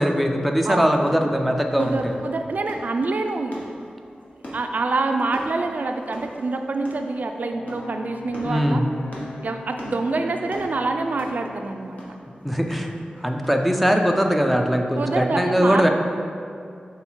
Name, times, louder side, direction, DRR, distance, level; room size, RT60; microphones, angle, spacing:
voice 1, 0.0-2.2 8.4-8.8 12.4-12.9 13.2-15.9, equal, ahead, 2 dB, 0.5 m, -21 dB
voice 2, 0.6-1.2 1.8-3.8 4.3-8.8 9.4-12.0 15.0-15.9, right 3 dB, 65° right, 5 dB, 0.4 m, -26 dB
sound 1, 1.0-13.7, equal, 50° left, 1.3 m, -41 dB
Brass instrument, 7.5-11.7, left 4 dB, 80° left, 0.4 m, -41 dB
5.6 x 3.9 x 4.5 m, 2.3 s
wide cardioid pair, 80°, 3 cm